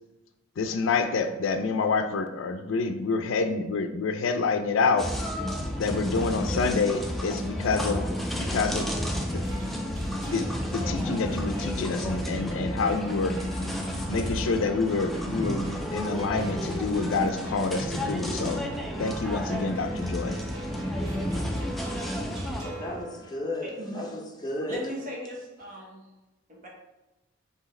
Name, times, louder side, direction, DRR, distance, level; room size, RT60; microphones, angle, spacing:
voice 1, 0.6-5.1 5.8-8.1 8.4-8.9 9.3-9.4 9.9-13.4 14.1-18.6 19.0-20.4, left 4 dB, 75° left, 8 dB, 0.4 m, -27 dB
sound 1, 5.0-22.6, equal, ahead, 0.3 m, -31 dB
sound 2, 9.3-23.7, right 1 dB, 90° right, 1.0 m, -46 dB
sound 3, 15.5-23.0, equal, 20° right, 1.2 m, -43 dB
voice 2, 22.6-24.8, left 1 dB, 20° left, 0 dB, 0.7 m, -34 dB
voice 3, 23.6-24.0 24.7-26.0 26.5-26.7, equal, 40° right, -2 dB, 1.0 m, -37 dB
4.7 x 2.8 x 3.1 m, 1.0 s
head